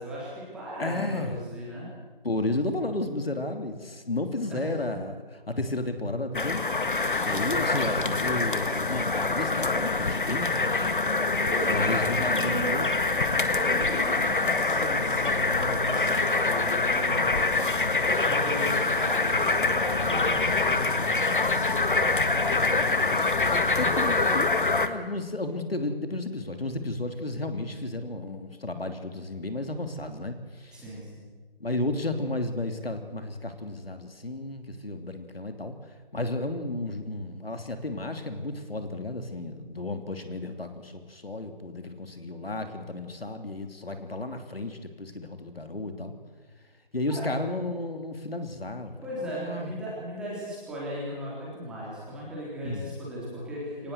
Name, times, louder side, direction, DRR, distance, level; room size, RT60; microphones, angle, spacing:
voice 1, 0.0-1.9 4.5-5.0 7.3-7.9 11.4-12.8 13.5-17.8 18.0-23.3 23.9-24.0 30.7-31.3 47.1-47.2 49.0-53.9, equal, 5° right, -7 dB, 3.6 m, -37 dB
voice 2, 0.8-1.3 2.2-6.8 7.2-10.9 11.7-12.9 23.5-24.2 24.8-30.8 31.6-35.8 36.1-46.1 46.9-49.7 52.6-52.9, left 2 dB, 80° left, 7 dB, 3.1 m, -33 dB
sound 1, 6.3-24.9, left 3 dB, 60° left, 1.9 m, -25 dB
24.5 x 19.0 x 8.1 m, 1.4 s
figure-of-eight pair, 165°, 29 cm